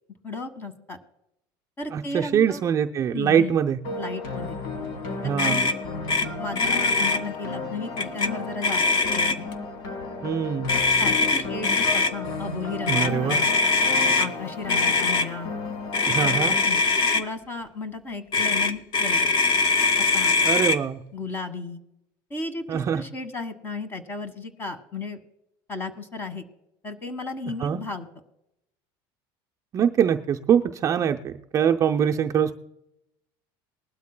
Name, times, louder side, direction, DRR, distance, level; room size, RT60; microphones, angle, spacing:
voice 1, 0.2-1.0 1.8-2.6 3.1-3.5 4.0-4.6 5.4-5.7 6.2-8.8 9.1-9.5 11.0-13.5 14.0-15.5 16.6-16.8 17.1-19.3 20.0-20.4 21.1-21.8 22.3-25.2 25.7-26.4 26.8-28.1, left 3 dB, 20° left, 10 dB, 1.5 m, -34 dB
voice 2, 1.9-3.8 5.2-5.6 10.2-10.7 12.9-13.4 16.1-16.5 20.4-21.0 22.7-23.0 27.6-27.8 29.7-32.5, right 8 dB, 30° right, 4 dB, 0.5 m, -23 dB
sound 1, 3.8-16.6, left 3 dB, 75° left, 4.8 m, -33 dB
Motor vehicle (road), 5.4-5.8 6.1-6.3 6.5-7.2 8.0-8.3 8.6-9.5 10.7-12.1 12.9-14.3 14.7-15.3 15.9-17.2 18.3-20.8, left 3 dB, 45° left, 0.9 m, -22 dB
20.5 x 12.5 x 2.2 m, 0.83 s
cardioid pair, 160°, 11 cm